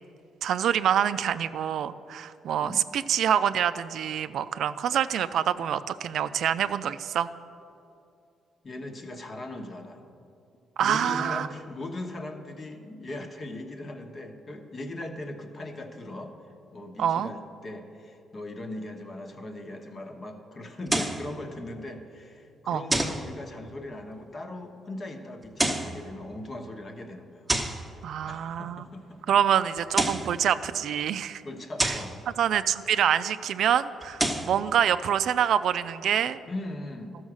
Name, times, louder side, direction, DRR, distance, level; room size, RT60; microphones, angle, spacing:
voice 1, 0.4-7.3 10.8-11.5 17.0-17.3 22.7-22.8 28.0-28.8 29.3-31.4 31.8-32.0 32.4-36.4, right 9 dB, 70° right, 13 dB, 0.3 m, -26 dB
voice 2, 8.6-10.0 10.8-16.3 16.7-27.5 28.2-29.4 31.4-32.2 36.5-37.2, left 1 dB, 40° left, 4 dB, 1.2 m, -39 dB
sound 1, 20.9-21.3 22.9-23.3 25.4-26.0 27.5-27.8 29.8-30.3 31.8-32.1 34.0-34.5, right 1 dB, 10° right, 1.0 m, -27 dB
13.0 x 6.3 x 6.2 m, 2.6 s
cardioid pair, 90°, 0 cm